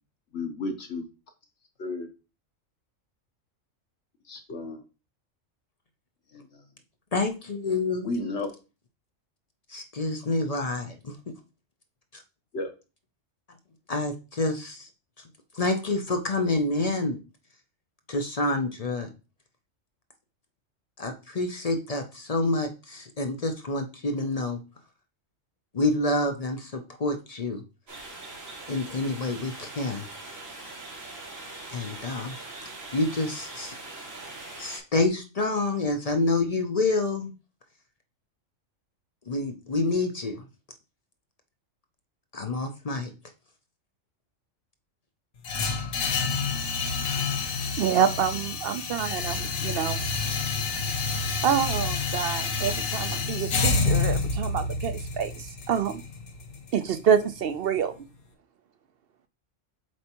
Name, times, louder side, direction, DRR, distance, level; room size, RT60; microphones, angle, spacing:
voice 1, 0.3-1.0 1.8-2.1 4.3-4.8 6.3-6.5 8.0-8.5 12.5-12.7, left 2 dB, 60° left, 5 dB, 1.2 m, -32 dB
voice 2, 7.1-8.1 9.7-11.3 12.1-12.2 13.9-14.9 15.5-17.2 18.1-19.1 21.0-24.6 25.7-27.6 28.7-30.1 31.7-32.3 32.9-33.7 34.6-37.3 39.3-40.4 42.3-43.1, left 2 dB, 40° left, 6 dB, 0.5 m, -28 dB
sound 1, 27.9-34.8, right 2 dB, 90° right, 2.4 m, -42 dB
sound 2, 45.4-57.5, left 4 dB, 80° left, 1.3 m, -28 dB
voice 3, 47.8-50.0 51.4-56.0 56.7-57.9, right 8 dB, 60° right, 10 dB, 0.7 m, -27 dB
7.6 x 4.4 x 2.9 m, 0.31 s
omnidirectional pair, 1.3 m